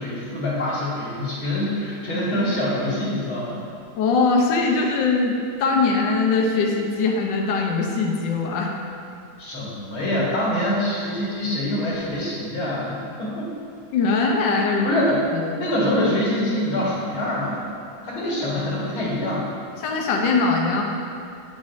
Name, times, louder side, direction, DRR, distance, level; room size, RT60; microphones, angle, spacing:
voice 1, 0.0-3.6 9.4-13.5 14.8-15.2 15.5-17.7 18.0-19.5, left 1 dB, 85° left, -7 dB, 2.4 m, -25 dB
voice 2, 4.0-8.7 13.9-15.0 15.3-15.6 19.8-20.8, left 4 dB, 70° left, 0 dB, 1.5 m, -21 dB
9.3 x 7.3 x 2.6 m, 2.5 s
omnidirectional pair, 2.2 m